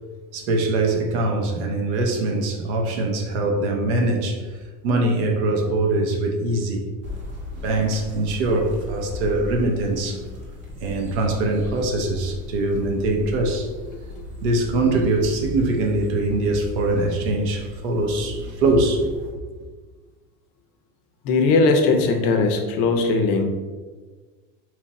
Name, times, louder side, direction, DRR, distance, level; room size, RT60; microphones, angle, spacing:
voice 1, 0.3-4.5 4.8-6.8 7.6-10.2 10.8-13.7 14.4-19.7, right 2 dB, 65° right, 0.8 m, -23 dB
sound 1, 7.0-19.3, left 3 dB, 30° right, 0.7 m, -37 dB
voice 2, 21.2-23.4, left 3 dB, 50° left, 0.6 m, -19 dB
3.0 x 2.5 x 3.9 m
supercardioid pair, 170°, 38 cm